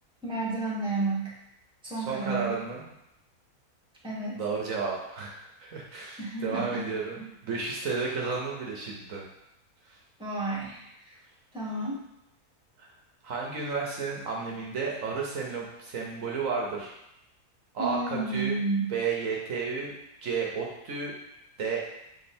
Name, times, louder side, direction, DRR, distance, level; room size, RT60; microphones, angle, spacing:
voice 1, 0.2-1.3 1.8-2.6 4.0-4.4 6.2-6.8 7.2-7.3 10.2-11.2 11.5-12.1 17.8-18.9, right 2 dB, 5° right, -7 dB, 1.4 m, -31 dB
voice 2, 2.0-2.8 4.3-9.2 9.9-10.0 12.8-12.9 13.2-16.9 17.7-18.6 18.9-19.9 20.2-21.1 21.6-21.9, right 5 dB, 65° right, -2 dB, 1.2 m, -32 dB
7.1 x 3.3 x 4.3 m, 0.84 s
omnidirectional pair, 1.6 m